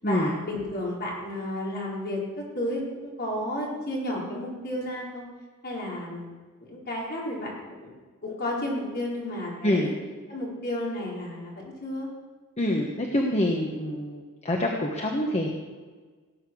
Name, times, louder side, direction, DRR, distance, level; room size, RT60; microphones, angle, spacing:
voice 1, 0.0-5.2 5.6-6.3 6.6-7.9 8.2-9.9 10.3-12.1, left 1 dB, 50° left, -4 dB, 4.7 m, -32 dB
voice 2, 12.6-15.5, left 1 dB, 30° left, 1 dB, 1.3 m, -26 dB
18.0 x 9.1 x 6.3 m, 1.4 s
head